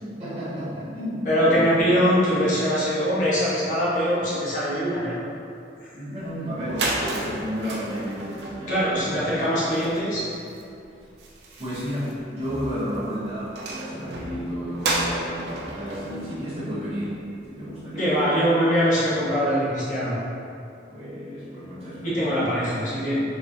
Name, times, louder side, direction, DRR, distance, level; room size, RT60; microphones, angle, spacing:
voice 1, 0.0-2.0 5.9-9.2 11.6-17.2 17.5-18.3 20.9-22.4, equal, 35° right, -13 dB, 1.4 m, -32 dB
voice 2, 1.2-5.2 5.8-5.9 8.7-10.2 17.9-20.1 22.0-23.2, equal, 45° left, -10 dB, 0.9 m, -22 dB
sound 1, 6.3-6.4 6.6-17.4, right 2 dB, 60° right, 0.5 m, -33 dB
4.3 x 3.0 x 2.7 m, 2.5 s
head